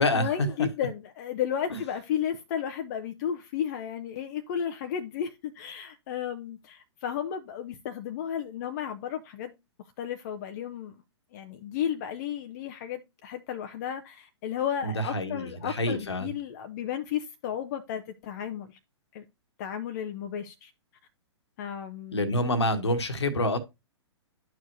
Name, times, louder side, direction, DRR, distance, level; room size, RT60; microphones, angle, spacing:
voice 1, 0.1-9.5 10.0-10.9 11.3-18.8 19.1-19.2 19.6-20.7 21.6-22.4, left 9 dB, 35° left, 0.6 m, -33 dB
voice 2, 14.8-16.3 22.1-23.6, left 1 dB, 65° left, 1.4 m, -27 dB
11.0 x 4.7 x 2.6 m
figure-of-eight pair, 115°, 15 cm